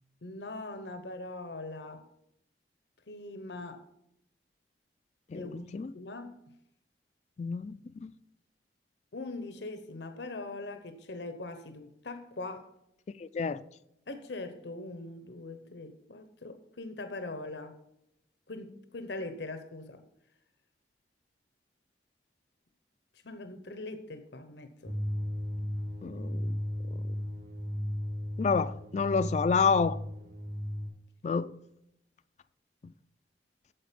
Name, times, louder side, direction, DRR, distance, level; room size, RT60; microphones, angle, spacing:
voice 1, 0.2-2.1 3.1-3.8 5.3-6.4 9.1-12.7 14.1-17.8 18.5-20.0 23.2-25.0, left 2 dB, 80° left, 0.9 m, -41 dB
voice 2, 5.3-5.9 7.4-8.1 13.2-13.6 26.0-26.6 26.9-27.0 28.4-30.0 31.2-31.5, left 5 dB, 40° left, 0.3 m, -29 dB
sound 1, 24.8-30.9, left 1 dB, 85° right, 3.5 m, -35 dB
8.8 x 7.4 x 5.1 m
head